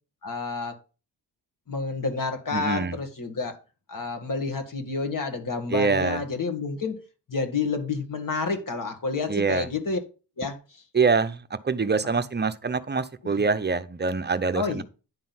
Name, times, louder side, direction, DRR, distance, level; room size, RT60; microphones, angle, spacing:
voice 1, 0.2-0.8 1.7-3.6 3.9-7.0 7.3-10.0 10.4-10.6 12.1-12.2 13.4-13.5 14.5-14.8, left 4 dB, 50° left, 2.1 m, -29 dB
voice 2, 2.5-3.0 5.7-6.2 9.3-9.7 10.9-14.8, right 4 dB, 25° right, 0.7 m, -25 dB
10.5 x 3.8 x 6.0 m
cardioid pair, 100°, 43 cm